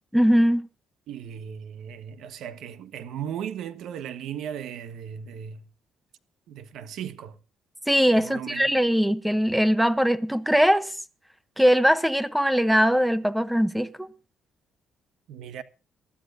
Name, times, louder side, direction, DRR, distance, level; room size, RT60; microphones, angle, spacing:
voice 1, 0.1-0.7 7.9-10.9 11.6-14.1, equal, ahead, 0.7 m, -21 dB
voice 2, 1.1-5.7 6.5-7.4 8.1-8.8 15.3-15.6, right 9 dB, 65° right, 1.2 m, -37 dB
23.5 x 12.5 x 2.6 m
cardioid pair, 170°, 0 cm